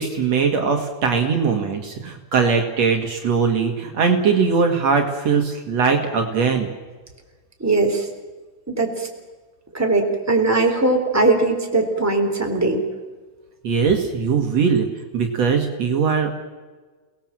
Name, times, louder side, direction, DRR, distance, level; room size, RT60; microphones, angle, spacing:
voice 1, 0.0-6.7 13.6-14.9 15.1-16.3, right 5 dB, 60° right, 4 dB, 3.0 m, -20 dB
voice 2, 7.6-8.1 8.7-9.1 9.7-12.8, right 2 dB, 5° right, 2 dB, 3.4 m, -20 dB
29.0 x 20.0 x 7.6 m, 1.4 s
omnidirectional pair, 3.5 m